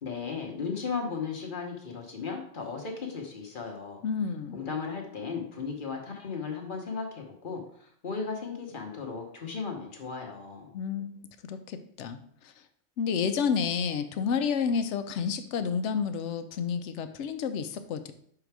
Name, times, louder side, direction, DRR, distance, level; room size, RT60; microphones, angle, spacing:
voice 1, 0.0-4.0 4.5-10.7, left 5 dB, 45° left, 1 dB, 1.1 m, -36 dB
voice 2, 4.0-4.6 10.7-12.2 12.4-12.5 13.0-18.1, left 6 dB, 80° left, 9 dB, 0.9 m, -30 dB
5.7 x 3.9 x 4.6 m, 0.65 s
omnidirectional pair, 1.2 m